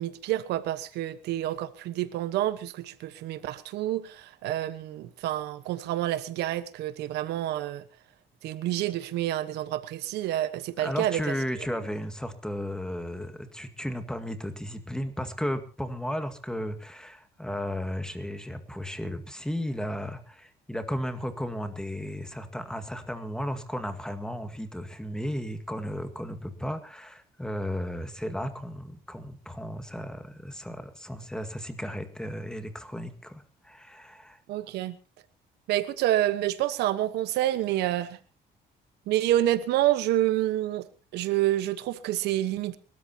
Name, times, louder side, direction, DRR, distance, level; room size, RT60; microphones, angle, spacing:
voice 1, 0.0-7.8 8.4-11.3 34.5-35.0 35.7-38.2 39.1-40.9 41.1-42.8, right 13 dB, 80° right, 1.2 m, -28 dB
voice 2, 10.8-34.4, equal, 5° left, 2.0 m, -34 dB
29.0 x 13.5 x 2.9 m
cardioid pair, 110°, 17 cm